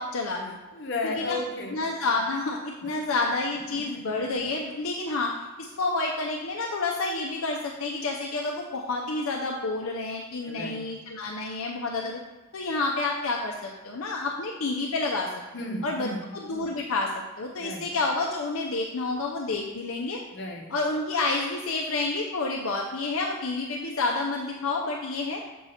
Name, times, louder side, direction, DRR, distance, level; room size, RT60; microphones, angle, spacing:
voice 1, 0.0-0.6 1.0-1.4 1.7-12.2 12.5-15.3 15.8-17.1 17.4-20.2 20.7-25.4, left 3 dB, 75° left, 0 dB, 0.7 m, -29 dB
voice 2, 0.7-1.8 3.5-4.1 10.4-10.8 15.5-16.4 17.6-17.9 20.3-20.7, left 2 dB, 55° left, 1 dB, 1.1 m, -34 dB
7.3 x 4.6 x 4.2 m, 1.1 s
head